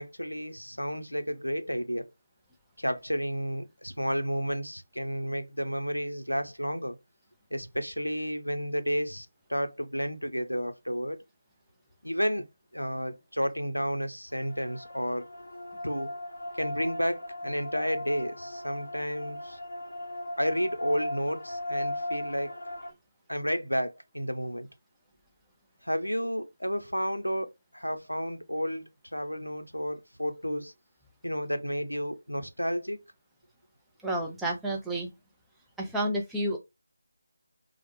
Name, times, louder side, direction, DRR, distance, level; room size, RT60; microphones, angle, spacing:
voice 1, 0.0-2.1 2.8-7.0 7.5-11.2 12.0-12.5 12.7-15.3 15.8-16.1 16.6-19.6 20.4-22.6 23.3-24.7 25.8-30.7 31.2-33.0, equal, 90° left, 0.5 m, -31 dB
sound 1, 14.3-22.9, left 1 dB, 50° left, 0.7 m, -37 dB
voice 2, 34.0-35.1 35.8-36.6, right 1 dB, 5° right, 0.5 m, -30 dB
3.1 x 2.0 x 3.0 m
figure-of-eight pair, 155°, 0 cm